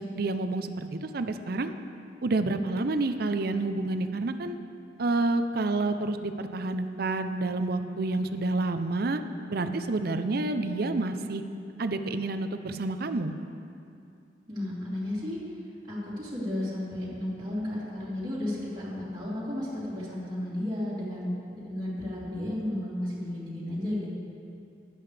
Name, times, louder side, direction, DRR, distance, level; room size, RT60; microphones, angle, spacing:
voice 1, 0.0-1.7 2.2-4.6 5.0-9.2 9.5-11.4 11.8-13.3, right 2 dB, 55° right, 8 dB, 0.6 m, -29 dB
voice 2, 14.5-15.4 15.9-24.1, left 1 dB, 25° right, -10 dB, 3.4 m, -33 dB
16.0 x 11.0 x 3.4 m, 2.5 s
head